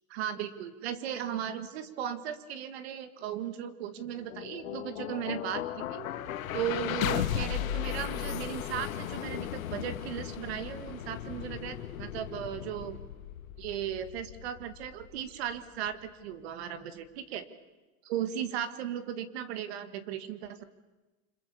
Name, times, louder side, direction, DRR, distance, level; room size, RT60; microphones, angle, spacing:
voice 1, 0.1-6.1 6.5-13.0 13.6-17.5 18.0-20.6, right 9 dB, 50° right, 11 dB, 1.9 m, -36 dB
sound 1, 4.0-16.1, left 11 dB, 75° left, 2.0 m, -36 dB
29.5 x 26.0 x 7.1 m, 1.1 s
supercardioid pair, 165°, 41 cm